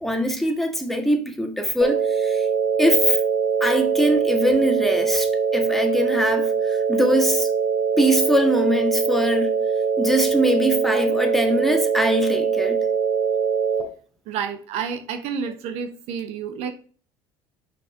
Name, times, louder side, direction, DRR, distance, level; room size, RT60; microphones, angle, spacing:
voice 1, 0.0-2.5 2.8-3.2 3.6-7.5 8.0-9.5 10.0-12.8, equal, ahead, 1.6 m, -22 dB
sound 1, 1.8-13.8, right 6 dB, 45° right, 3.0 m, -22 dB
voice 2, 14.3-16.7, right 7 dB, 65° right, 1.0 m, -29 dB
5.7 x 4.8 x 4.9 m
hypercardioid pair, 80°, 11 cm